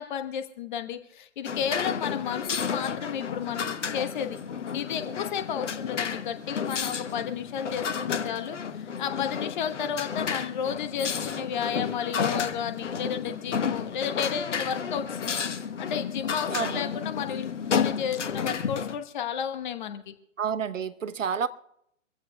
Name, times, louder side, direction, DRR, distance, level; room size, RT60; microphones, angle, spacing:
voice 1, 0.0-4.4 4.7-15.3 15.8-20.1, left 8 dB, 35° left, 1.3 m, -32 dB
sound 1, 1.5-19.0, left 6 dB, 65° left, 1.3 m, -32 dB
voice 2, 20.4-21.5, right 7 dB, 70° right, 1.0 m, -29 dB
24.5 x 15.5 x 2.3 m
figure-of-eight pair, 130°, 39 cm